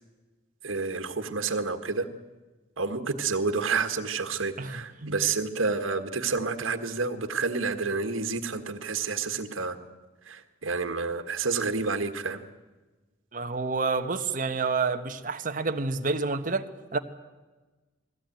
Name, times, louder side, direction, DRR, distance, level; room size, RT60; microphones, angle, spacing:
voice 1, 0.6-2.1 2.8-9.8 10.3-12.4, right 4 dB, 85° right, 7 dB, 1.6 m, -29 dB
voice 2, 13.3-17.0, right 4 dB, 45° right, 6 dB, 1.2 m, -29 dB
21.0 x 16.5 x 9.1 m, 1.2 s
head